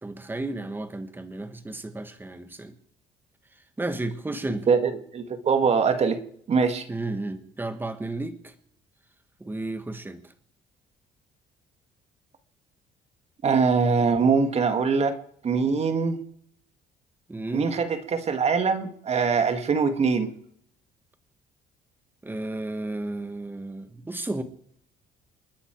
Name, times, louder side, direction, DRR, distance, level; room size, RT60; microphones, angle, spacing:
voice 1, 0.0-2.7 3.8-4.7 6.9-8.5 9.4-10.2 17.3-17.8 22.2-24.4, right 2 dB, 10° right, 1.6 m, -33 dB
voice 2, 4.7-6.2 6.5-6.9 13.4-15.2 15.4-16.2 17.5-20.3, right 5 dB, 40° right, 1.9 m, -23 dB
29.0 x 9.8 x 4.7 m
cardioid pair, 110°, 17 cm